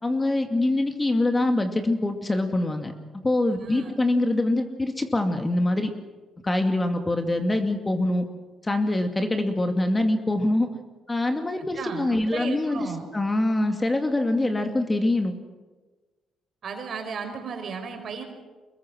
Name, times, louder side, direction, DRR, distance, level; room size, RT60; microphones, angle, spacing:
voice 1, 0.0-2.9 3.2-5.9 6.4-8.3 8.6-10.7 11.1-12.9 13.1-15.3, left 2 dB, 20° left, 5 dB, 2.4 m, -24 dB
voice 2, 3.5-3.9 11.6-13.0 16.6-18.2, right 5 dB, 60° right, 5 dB, 4.8 m, -35 dB
25.0 x 21.0 x 6.2 m, 1.3 s
cardioid pair, 80°, 0 cm